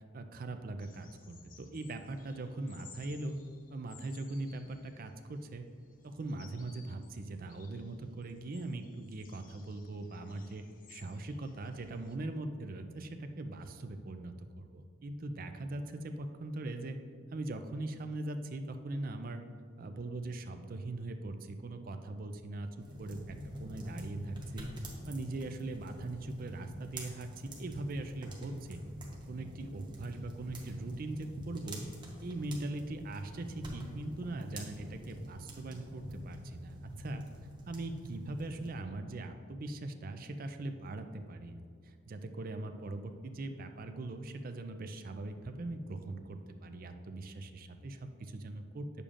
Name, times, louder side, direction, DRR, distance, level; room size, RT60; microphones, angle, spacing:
voice 1, 0.1-3.4 3.7-5.7 6.0-10.6 10.9-17.0 17.3-19.4 19.8-24.7 25.1-28.8 29.3-31.8 32.2-37.2 37.7-48.9, right 2 dB, 45° right, 7 dB, 0.4 m, -41 dB
sound 1, 0.8-12.2, left 6 dB, 45° left, 0.5 m, -60 dB
sound 2, 22.8-38.7, equal, 25° right, 0.9 m, -45 dB
8.6 x 6.7 x 2.5 m, 2.2 s
head